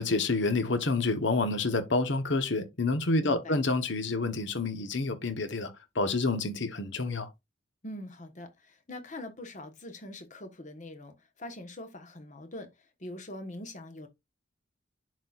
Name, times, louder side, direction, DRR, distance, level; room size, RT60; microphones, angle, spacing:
voice 1, 0.0-7.3, left 3 dB, 60° left, 1.1 m, -28 dB
voice 2, 3.2-3.6 7.8-12.7 13.0-14.1, left 1 dB, 40° left, 1.2 m, -43 dB
11.0 x 4.2 x 2.4 m
head